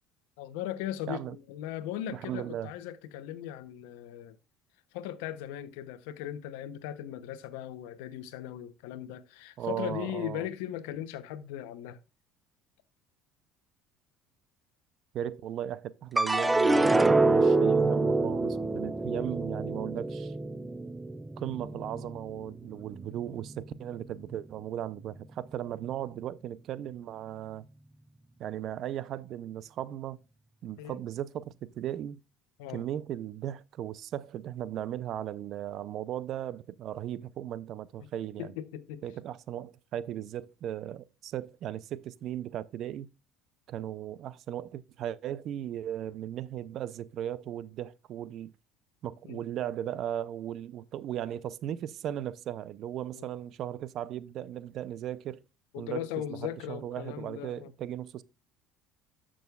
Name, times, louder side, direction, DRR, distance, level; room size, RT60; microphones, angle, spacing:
voice 1, 0.4-4.4 4.9-12.0 30.8-31.0 32.6-32.9 38.0-38.1 38.4-39.0 49.2-49.5 53.1-53.3 55.7-57.7, left 11 dB, 85° left, 0.8 m, -38 dB
voice 2, 2.1-2.7 9.6-10.4 15.1-20.3 21.4-27.6 28.4-30.2 30.6-32.2 32.7-38.5 39.0-43.1 43.7-48.5 49.0-55.4 55.8-56.0 56.4-58.2, right 11 dB, 55° right, 0.6 m, -37 dB
sound 1, 16.2-22.6 23.0-23.7, right 2 dB, 10° right, 0.5 m, -26 dB
13.5 x 6.3 x 2.4 m
supercardioid pair, 105°, 0 cm